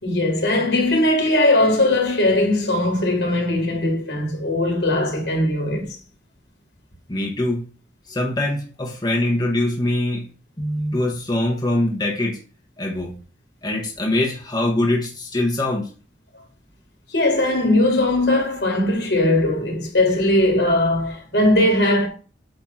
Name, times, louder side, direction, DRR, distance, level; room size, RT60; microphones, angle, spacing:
voice 1, 0.0-6.0 17.1-22.1, left 1 dB, 75° left, 3.3 m, -19 dB
voice 2, 7.1-7.7 8.1-10.3 10.6-12.4 12.8-13.1 13.6-15.9, left 1 dB, 25° left, 1.4 m, -23 dB
8.9 x 3.5 x 5.7 m
head